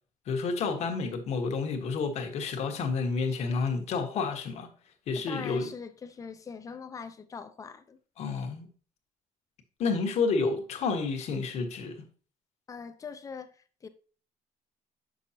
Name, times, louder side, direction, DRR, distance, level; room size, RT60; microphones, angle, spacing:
voice 1, 0.3-4.7 5.1-5.7 8.2-8.7 9.8-12.0, left 4 dB, 55° left, 1.3 m, -30 dB
voice 2, 5.1-8.0 12.7-13.9, left 5 dB, 25° left, 0.6 m, -42 dB
7.9 x 6.2 x 2.8 m
cardioid pair, 165°, 14 cm